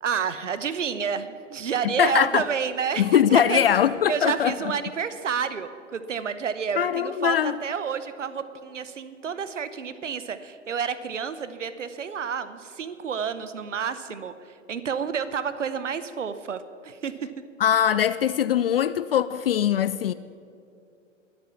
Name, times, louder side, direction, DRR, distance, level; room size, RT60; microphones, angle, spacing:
voice 1, 0.0-3.6 4.1-14.3 14.7-17.1, right 7 dB, 70° right, 0.9 m, -29 dB
voice 2, 1.8-2.4 3.0-4.6 6.8-7.6 17.6-20.1, left 10 dB, 50° left, 0.4 m, -22 dB
23.0 x 8.7 x 5.8 m
figure-of-eight pair, 105°, 38 cm